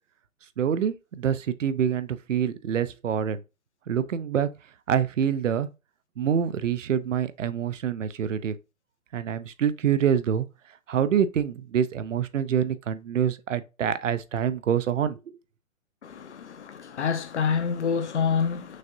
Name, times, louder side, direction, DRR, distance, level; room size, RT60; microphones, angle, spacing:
voice 1, 0.6-3.4 3.9-4.5 4.9-5.7 6.2-8.5 9.1-10.5 10.9-15.2, right 8 dB, 65° right, 0.6 m, -26 dB
voice 2, 16.0-18.8, left 6 dB, 55° left, 0.8 m, -27 dB
6.3 x 2.7 x 2.6 m
hypercardioid pair, 170°, 41 cm